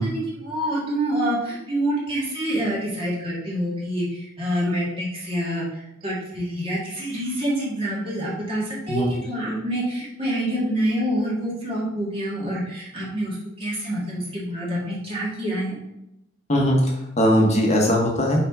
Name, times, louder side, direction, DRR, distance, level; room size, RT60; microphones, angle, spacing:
voice 1, 0.0-15.7, right 1 dB, 30° right, -6 dB, 1.9 m, -27 dB
voice 2, 16.5-18.5, equal, 35° left, -1 dB, 1.3 m, -20 dB
5.7 x 4.8 x 3.6 m, 0.85 s
head